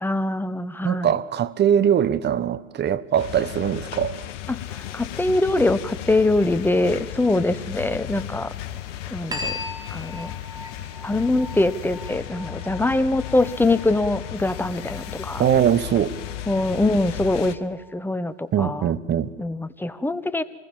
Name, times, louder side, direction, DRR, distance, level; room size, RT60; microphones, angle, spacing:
voice 1, 0.0-1.2 4.5-4.6 4.9-8.5 9.1-9.5 9.9-10.3 11.0-15.4 16.5-18.9 19.4-20.4, left 2 dB, 5° left, 1.0 m, -23 dB
voice 2, 0.8-4.2 15.4-16.2 18.5-19.3, right 9 dB, 25° right, 1.1 m, -21 dB
sound 1, 3.2-17.6, left 12 dB, 70° left, 1.6 m, -35 dB
sound 2, 9.3-18.3, left 2 dB, 10° right, 3.5 m, -40 dB
26.5 x 20.5 x 7.4 m
hypercardioid pair, 100°, 38 cm